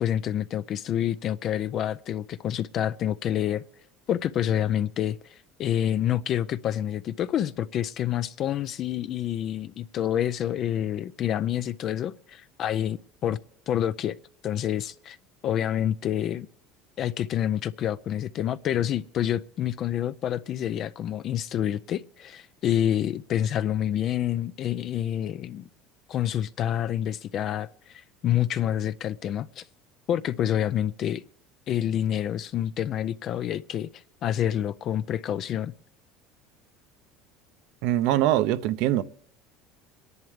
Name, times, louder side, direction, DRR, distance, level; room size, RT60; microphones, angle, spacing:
voice 1, 0.0-3.6 4.1-13.4 13.7-14.2 14.4-15.2 15.4-16.5 17.0-25.7 26.1-29.7 30.1-31.2 31.7-35.7, left 10 dB, 45° left, 0.4 m, -28 dB
voice 2, 37.8-39.0, right 13 dB, 70° right, 0.7 m, -23 dB
24.0 x 11.0 x 3.3 m
cardioid pair, 145°, 0 cm